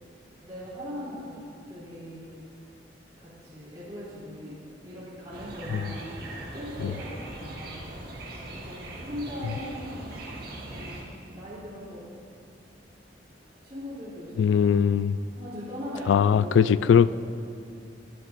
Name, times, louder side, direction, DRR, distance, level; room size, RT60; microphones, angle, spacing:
voice 1, 0.4-1.4 1.7-2.2 3.2-4.6 4.8-6.1 6.5-7.8 8.5-10.1 10.6-10.9 11.3-12.1 13.6-14.8 15.3-17.1, equal, 25° right, -10 dB, 3.2 m, -39 dB
sound 1, 5.3-11.0, right 1 dB, 55° right, 1.5 m, -40 dB
voice 2, 14.4-15.2 16.1-17.1, left 7 dB, 90° left, 17 dB, 0.3 m, -20 dB
22.0 x 10.5 x 2.6 m, 2.4 s
head